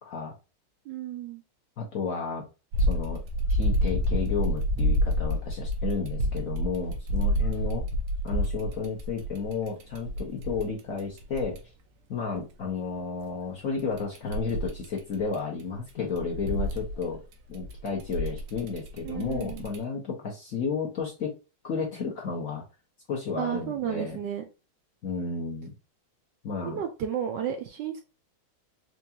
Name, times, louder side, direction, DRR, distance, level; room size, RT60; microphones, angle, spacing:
voice 1, 0.0-0.3 1.8-2.4 2.9-3.2 3.5-7.8 8.2-11.6 12.1-17.2 17.5-21.3 21.6-22.6 23.1-24.2 25.0-25.7 26.4-26.8, left 5 dB, 55° left, -1 dB, 1.0 m, -32 dB
voice 2, 0.9-1.4 19.0-19.7 23.4-24.4 26.6-28.0, right 9 dB, 75° right, 5 dB, 1.1 m, -32 dB
sound 1, 2.7-11.6 13.8-15.6 15.9-19.8, equal, 90° right, 1.6 m, -28 dB
4.6 x 2.5 x 2.8 m, 0.30 s
omnidirectional pair, 2.3 m